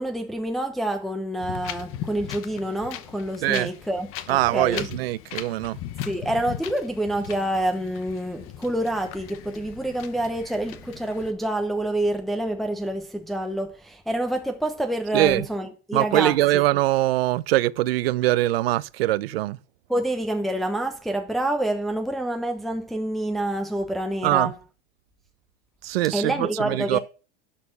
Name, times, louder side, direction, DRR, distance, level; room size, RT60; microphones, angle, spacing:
voice 1, 0.0-4.9 6.0-16.6 19.9-24.5 26.1-27.0, right 1 dB, ahead, 0.9 m, -27 dB
Wind, 1.4-11.3, left 12 dB, 45° left, 1.0 m, -38 dB
voice 2, 4.3-5.8 15.1-15.5 15.9-19.6 24.2-24.5 25.8-27.0, right 16 dB, 75° right, 0.6 m, -22 dB
11.5 x 4.3 x 6.0 m
hypercardioid pair, 110°, 30 cm